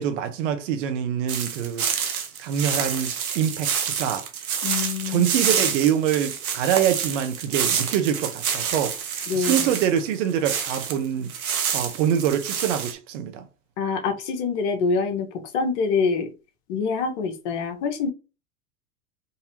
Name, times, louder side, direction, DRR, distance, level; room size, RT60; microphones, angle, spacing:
voice 1, 0.0-1.9 2.4-4.3 5.1-11.3 11.7-13.5, right 9 dB, 60° right, 0.8 m, -25 dB
sound 1, 1.3-11.0 11.3-12.9, right 7 dB, 85° right, 0.9 m, -28 dB
voice 2, 4.6-5.2 9.3-9.6 13.8-15.3 15.5-16.3 16.7-18.1, left 5 dB, 55° left, 1.2 m, -25 dB
3.9 x 2.7 x 2.9 m
hypercardioid pair, 100°, 42 cm